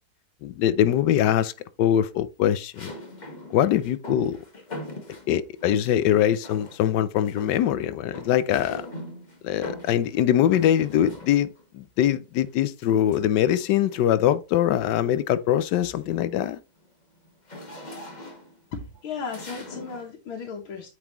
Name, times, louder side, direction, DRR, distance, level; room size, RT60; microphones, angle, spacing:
voice 1, 0.4-1.5 1.8-2.9 3.5-4.4 5.3-8.8 9.4-16.6, left 11 dB, 70° left, 1.1 m, -23 dB
sound 1, 0.9-1.4 2.7-6.1 6.4-7.0 7.2-11.7 12.8-14.2 14.7-15.0 15.3-20.1, left 1 dB, 25° left, 1.4 m, -43 dB
voice 2, 18.7-20.9, left 5 dB, 90° left, 2.0 m, -35 dB
8.8 x 4.8 x 3.0 m
omnidirectional pair, 2.2 m